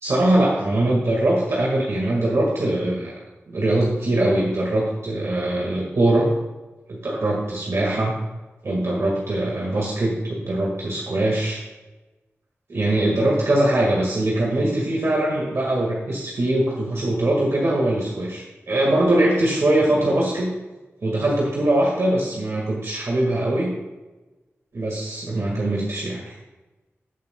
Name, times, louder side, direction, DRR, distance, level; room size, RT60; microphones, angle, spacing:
voice 1, 0.0-3.1 3.5-6.3 7.0-8.1 8.6-11.6 12.7-20.5 21.0-23.7 24.7-26.3, right 1 dB, 70° right, -3 dB, 1.8 m, -22 dB
15.0 x 7.4 x 2.3 m, 1.1 s
wide cardioid pair, 85°, 5 cm